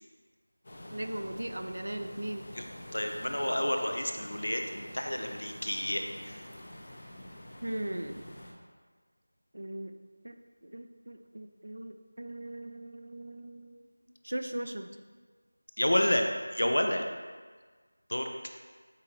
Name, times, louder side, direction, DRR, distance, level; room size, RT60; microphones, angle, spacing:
sound 1, 0.6-8.5, left 1 dB, 35° left, 0.8 m, -47 dB
voice 1, 0.9-2.6 7.6-8.2 9.5-9.9 10.2-10.3 10.6-13.8 14.2-14.9, right 1 dB, 60° right, 7 dB, 0.5 m, -38 dB
voice 2, 2.9-6.4 15.8-16.3 16.5-17.0 18.1-18.3, left 1 dB, 70° left, 4 dB, 0.7 m, -30 dB
8.4 x 3.7 x 3.2 m, 1.5 s
figure-of-eight pair, 170°, 0 cm